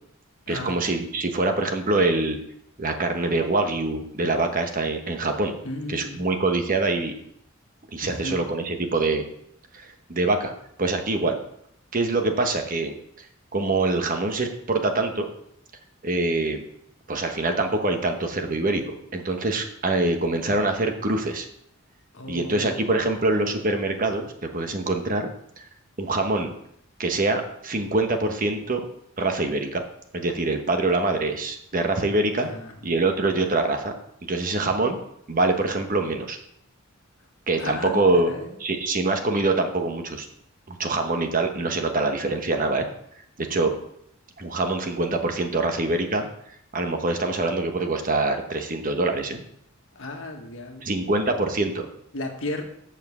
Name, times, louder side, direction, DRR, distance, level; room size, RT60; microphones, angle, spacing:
voice 1, 0.5-2.4 2.8-5.5 5.9-7.1 7.9-9.2 10.1-10.5 10.8-11.4 11.9-12.9 13.5-15.3 16.0-16.6 17.1-21.5 22.3-25.3 26.0-26.5 27.0-28.8 29.2-29.8 30.1-32.5 32.8-33.9 34.2-35.0 35.3-36.4 37.5-38.3 38.6-40.3 40.7-42.9 43.5-43.7 44.4-46.3 46.7-49.4 50.8-51.9, right 2 dB, 40° right, 4 dB, 1.1 m, -24 dB
voice 2, 5.6-6.2 8.0-8.4 22.1-22.9 32.4-32.8 37.6-38.6 49.9-51.0 52.1-52.6, left 1 dB, 65° left, 2 dB, 1.6 m, -35 dB
7.1 x 5.9 x 7.1 m, 0.72 s
head